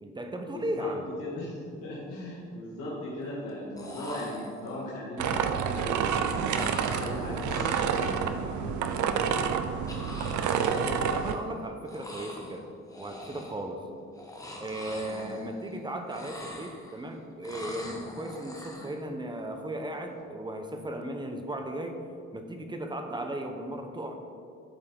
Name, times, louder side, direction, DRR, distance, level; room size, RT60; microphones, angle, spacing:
voice 1, 0.0-1.1 10.4-12.7 13.0-13.8 14.6-22.0 22.3-24.1, right 1 dB, 15° right, 5 dB, 0.9 m, -36 dB
voice 2, 0.5-9.0 15.0-15.2, left 1 dB, 90° left, -8 dB, 2.0 m, -38 dB
sound 1, 1.3-1.5 1.9-2.5 3.5-3.6 3.8-5.0 6.5-8.7 9.9-11.6 11.8-12.6 12.9-13.7 14.1-15.8 16.0-17.1 17.4-19.0, left 1 dB, 10° left, 1.2 m, -43 dB
sound 2, 5.2-11.3, right 7 dB, 75° right, 0.6 m, -28 dB
12.5 x 4.5 x 3.8 m, 2.3 s
cardioid pair, 90°, 30 cm